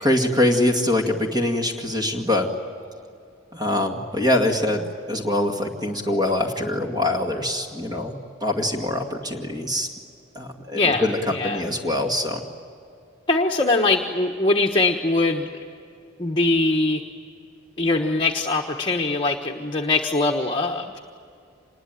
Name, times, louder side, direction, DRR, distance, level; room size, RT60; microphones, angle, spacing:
voice 1, 0.0-2.5 3.5-9.9 10.4-11.2 11.4-12.4, left 1 dB, 20° right, 1 dB, 2.1 m, -23 dB
voice 2, 10.7-11.6 13.3-15.5 16.2-17.0 17.8-21.0, left 2 dB, 25° left, 1 dB, 1.3 m, -22 dB
26.5 x 21.0 x 9.3 m, 2.4 s
head